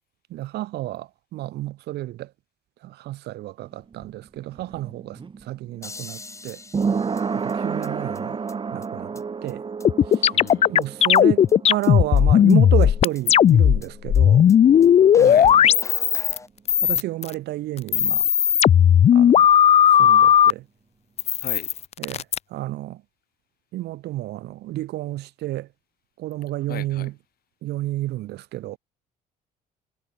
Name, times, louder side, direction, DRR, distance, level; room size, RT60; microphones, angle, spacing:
voice 1, 0.3-2.3 2.8-6.6 7.3-8.4 8.7-9.6 10.1-10.3 10.7-14.5 15.2-15.7 16.8-18.3 19.1-19.5 20.0-20.7 22.0-23.0 23.7-25.7 26.2-27.1 27.6-28.8, right 16 dB, 75° right, 4.1 m, -31 dB
sound 1, 3.6-15.2 15.4-15.5, right 5 dB, 30° right, 3.2 m, -31 dB
sound 2, 5.8-7.9 8.1-8.2 8.5-8.6 8.8-8.9 9.1-9.2 9.5-9.6 9.8-9.9 10.1-10.8 11.1-11.2 11.5-11.6 11.8-11.9 12.2-12.3 12.5-12.6 12.8-12.9 13.1-13.2 13.5-13.6 13.8-13.9 14.1-14.2 14.5-14.6 14.8-14.9 15.1-16.5, left 3 dB, 15° left, 4.3 m, -42 dB
sound 3, 9.8-13.8 14.0-16.4 16.7-17.3 17.8-20.5 21.2-22.4, left 9 dB, 40° left, 0.5 m, -15 dB
voice 2, 10.3-10.7 15.2-15.5 21.3-21.7 26.7-27.1, left 11 dB, 60° left, 7.9 m, -38 dB
cardioid pair, 110°, 17 cm